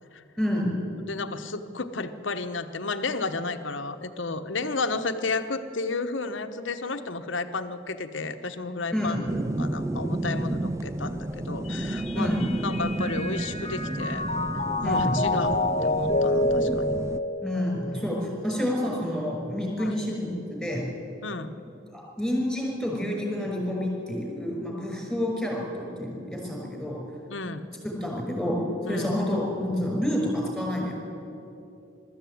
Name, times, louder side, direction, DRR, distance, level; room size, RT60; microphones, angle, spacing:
voice 1, 0.4-0.8 8.9-9.2 12.1-12.5 14.8-15.1 17.4-20.8 21.9-27.0 27.8-28.6 28.9-31.1, left 1 dB, ahead, -1 dB, 5.8 m, -29 dB
voice 2, 1.1-9.2 9.6-12.3 12.6-14.3 14.8-17.0 19.8-20.0 21.2-21.5 27.3-27.6 28.8-29.2, left 3 dB, 65° left, 9 dB, 1.1 m, -32 dB
sound 1, 9.3-17.2, right 1 dB, 15° right, 0.4 m, -31 dB
Mallet percussion, 11.7-18.1, left 2 dB, 35° left, 0.9 m, -28 dB
22.0 x 14.0 x 9.4 m, 2.9 s
head